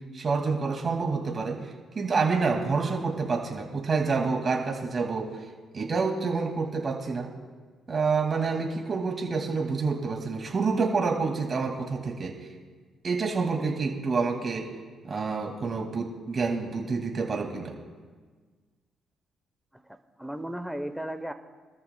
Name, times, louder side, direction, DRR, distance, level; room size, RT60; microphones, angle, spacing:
voice 1, 0.1-5.4 5.7-7.3 7.9-12.5 13.0-14.7 15.0-17.8, right 4 dB, 40° right, 1 dB, 2.1 m, -28 dB
voice 2, 19.7-21.3, right 1 dB, 5° right, 8 dB, 0.8 m, -36 dB
24.0 x 13.5 x 2.2 m, 1.5 s
cardioid pair, 90°, 0 cm